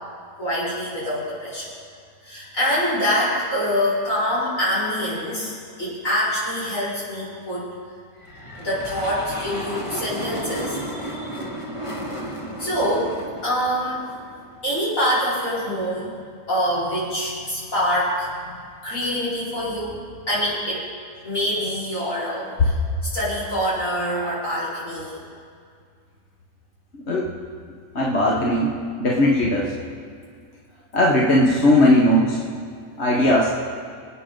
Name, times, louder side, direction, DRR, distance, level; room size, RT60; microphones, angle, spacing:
voice 1, 0.4-1.8 2.2-7.7 8.6-11.4 12.6-14.0 14.6-16.2 16.5-18.5 18.8-20.9 21.2-22.8 23.0-25.3, equal, 65° left, -9 dB, 5.3 m, -25 dB
sound 1, 8.2-14.6, equal, 20° left, 1.5 m, -33 dB
voice 2, 27.9-28.7 29.0-29.7 30.9-32.4 33.0-33.5, left 1 dB, 50° left, -3 dB, 1.5 m, -18 dB
25.5 x 8.9 x 3.9 m, 2.1 s
omnidirectional pair, 1.5 m